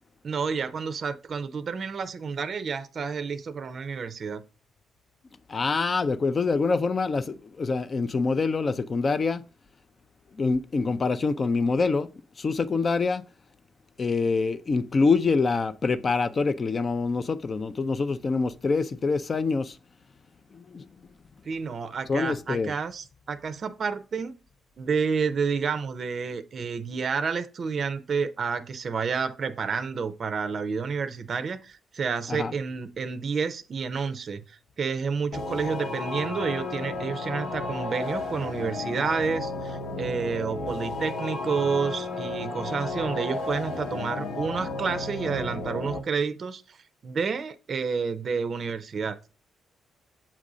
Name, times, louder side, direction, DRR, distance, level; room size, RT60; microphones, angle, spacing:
voice 1, 0.2-4.4 21.5-24.3 24.8-46.8 47.0-49.2, right 5 dB, 50° right, 0.5 m, -30 dB
voice 2, 5.5-9.4 10.3-12.1 12.4-13.2 14.0-19.8 20.5-20.9 22.1-22.7 32.3-32.5, left 4 dB, 35° left, 0.4 m, -25 dB
sound 1, 35.3-46.0, left 3 dB, 75° left, 1.1 m, -33 dB
7.3 x 2.6 x 4.8 m
cardioid pair, 90°, 0 cm